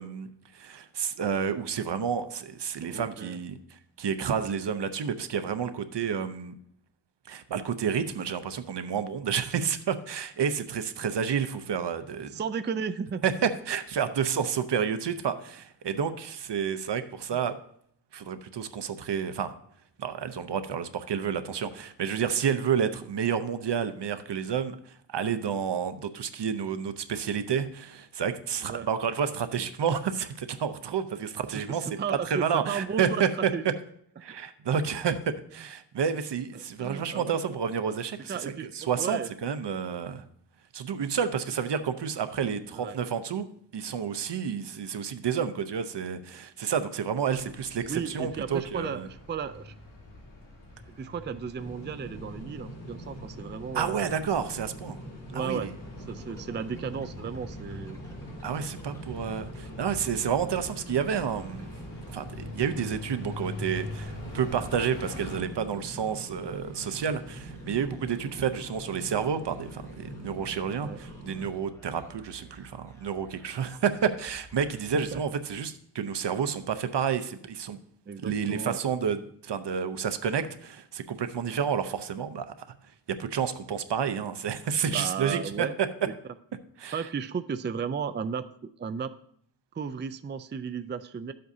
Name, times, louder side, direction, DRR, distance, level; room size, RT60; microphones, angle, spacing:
voice 1, 0.0-6.5 7.3-12.4 13.2-13.3 13.7-17.5 18.1-19.5 20.0-24.8 25.1-31.9 32.2-33.5 34.2-40.2 40.7-43.5 43.7-49.1 53.7-55.0 55.3-55.7 58.4-61.7 62.1-77.8 78.2-82.5 83.1-85.7 86.8-87.0, right 7 dB, 70° right, 11 dB, 0.7 m, -30 dB
voice 2, 2.9-3.4 12.3-13.3 14.4-14.5 17.3-17.4 28.6-28.9 31.5-33.8 34.3-34.4 36.5-37.4 38.3-39.3 42.7-43.0 47.8-49.7 51.0-54.1 55.3-55.7 56.1-58.0 70.8-71.0 75.1-75.2 78.1-78.8 84.9-85.7 86.9-88.5 88.8-89.1 89.7-91.3, right 6 dB, 25° right, 12 dB, 0.4 m, -34 dB
sound 1, 47.3-65.4, left 2 dB, 70° left, 3.2 m, -44 dB
sound 2, 51.6-71.5, equal, 35° left, 3.2 m, -43 dB
sound 3, 56.1-75.7, right 2 dB, 5° left, 1.6 m, -53 dB
12.5 x 7.7 x 2.7 m, 0.67 s
wide cardioid pair, 80°, 43 cm